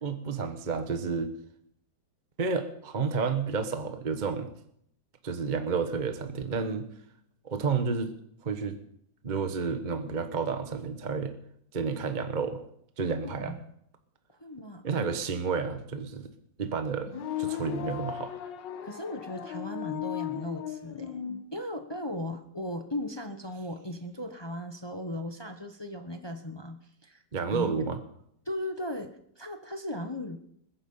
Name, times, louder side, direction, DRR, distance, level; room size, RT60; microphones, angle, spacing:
voice 1, 0.0-1.3 2.4-4.5 5.2-6.9 7.4-8.1 8.4-8.8 9.2-11.3 11.7-12.6 13.0-13.6 14.8-16.3 16.6-17.1 17.4-18.3 27.3-28.0, right 5 dB, 30° right, 8 dB, 1.1 m, -30 dB
voice 2, 13.2-13.6 14.4-15.1 18.8-21.2 21.5-27.2 27.5-27.8 28.5-30.4, left 1 dB, 20° left, 6 dB, 0.8 m, -37 dB
sound 1, 17.0-21.4, left 10 dB, 85° left, 1.7 m, -36 dB
21.0 x 10.0 x 5.5 m, 0.71 s
omnidirectional pair, 1.9 m